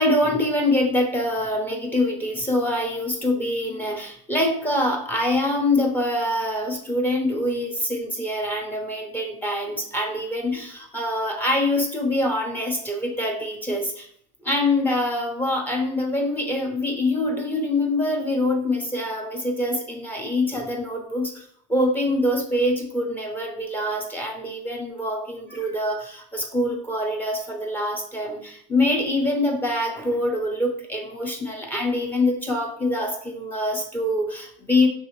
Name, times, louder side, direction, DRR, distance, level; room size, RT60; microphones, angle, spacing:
voice 1, 0.0-14.1 14.4-21.4 21.7-34.9, left 1 dB, 10° left, 2 dB, 0.8 m, -24 dB
5.4 x 3.2 x 3.1 m, 0.62 s
supercardioid pair, 130°, 16 cm